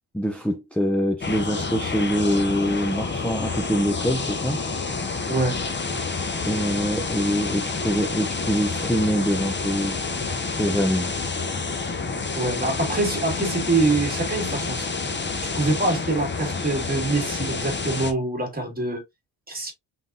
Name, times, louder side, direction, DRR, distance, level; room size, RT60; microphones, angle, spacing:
voice 1, 0.1-4.6 6.4-10.0 10.6-11.1, equal, 5° left, 0.3 m, -24 dB
sound 1, 1.2-18.1, left 4 dB, 25° left, 0.8 m, -29 dB
voice 2, 5.3-5.6 12.4-14.9 15.5-19.0 19.5-19.7, right 2 dB, 20° right, 1.8 m, -24 dB
4.0 x 3.8 x 2.5 m
wide cardioid pair, 125°, 46 cm